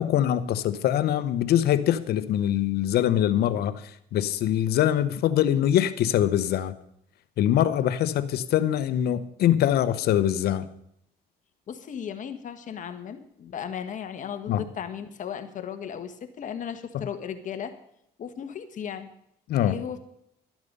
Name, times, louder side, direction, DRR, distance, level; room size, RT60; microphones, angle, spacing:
voice 1, 0.0-6.8 7.4-10.7 14.5-14.6 16.9-17.1 19.5-19.8, left 11 dB, 70° left, 12 dB, 1.0 m, -23 dB
voice 2, 11.7-17.7 18.2-19.1 19.6-20.0, left 8 dB, 50° left, 8 dB, 1.5 m, -36 dB
13.5 x 10.5 x 5.4 m, 0.74 s
cardioid pair, 110°, 17 cm